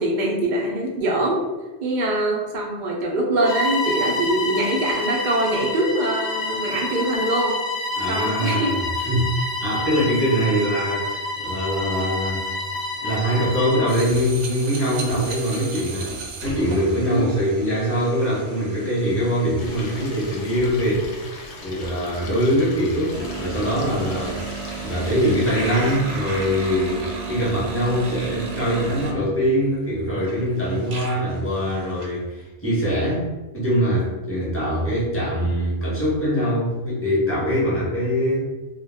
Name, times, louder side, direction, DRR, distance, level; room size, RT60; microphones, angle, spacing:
voice 1, 0.0-1.4 1.8-7.5 8.1-8.7 17.1-17.3, right 1 dB, 55° right, -1 dB, 0.5 m, -23 dB
Bowed string instrument, 3.4-14.0, left 2 dB, 45° left, 0.6 m, -28 dB
voice 2, 7.9-12.5 13.0-16.1 16.4-21.1 21.6-24.4 24.8-33.2 33.5-38.4, equal, 15° left, -7 dB, 0.8 m, -23 dB
sound 1, 13.9-20.6 23.1-29.3 29.9-30.0 30.3-32.1, right 3 dB, 75° right, 0.9 m, -34 dB
Stream, 19.6-25.9, left 2 dB, 75° left, 0.9 m, -39 dB
2.2 x 2.2 x 3.3 m, 1.2 s
omnidirectional pair, 1.2 m